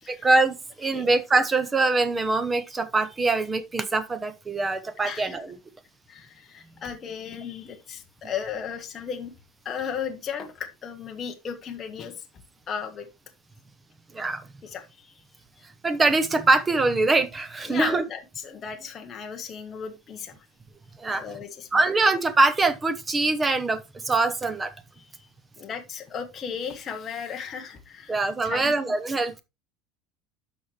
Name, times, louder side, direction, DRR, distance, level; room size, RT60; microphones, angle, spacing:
voice 1, 0.1-5.6 14.1-14.5 15.8-18.0 21.0-21.2 21.7-24.7 28.1-29.4, right 3 dB, 15° right, 0.8 m, -23 dB
voice 2, 5.0-5.4 6.1-9.3 9.6-12.2 12.7-13.1 14.6-15.2 17.6-20.3 21.1-21.8 25.0-25.3 25.6-28.7, left 7 dB, 25° left, 1.1 m, -35 dB
12.5 x 4.3 x 3.2 m
cardioid pair, 170°, 0 cm